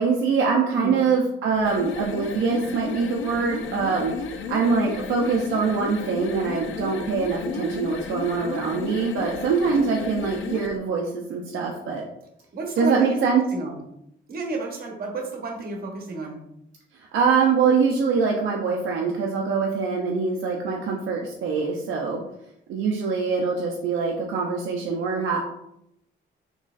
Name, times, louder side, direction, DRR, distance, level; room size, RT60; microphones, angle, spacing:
voice 1, 0.0-12.0 12.8-13.4 17.1-22.2 22.7-25.4, right 5 dB, 75° right, 0 dB, 0.6 m, -24 dB
sound 1, 1.5-10.8, left 6 dB, 75° left, 0.4 m, -33 dB
voice 2, 12.5-13.2 13.5-13.8 14.3-16.4, right 3 dB, 50° right, 1 dB, 1.0 m, -31 dB
3.8 x 3.1 x 2.4 m, 0.79 s
cardioid pair, 90°, 20 cm